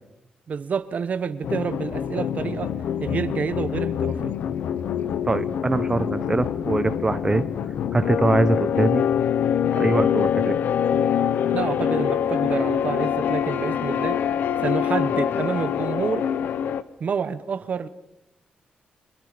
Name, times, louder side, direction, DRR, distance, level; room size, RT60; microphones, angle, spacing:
voice 1, 0.5-2.7 3.0-4.4 11.5-14.2 14.6-16.3 17.0-17.9, right 6 dB, 55° right, 14 dB, 1.1 m, -28 dB
sound 1, 1.4-16.8, left 9 dB, 85° left, 0.9 m, -25 dB
voice 2, 5.2-7.4 7.9-9.0 9.7-10.6, right 2 dB, 20° right, 12 dB, 1.0 m, -23 dB
29.5 x 25.0 x 5.1 m, 0.87 s
cardioid pair, 95°, 3 cm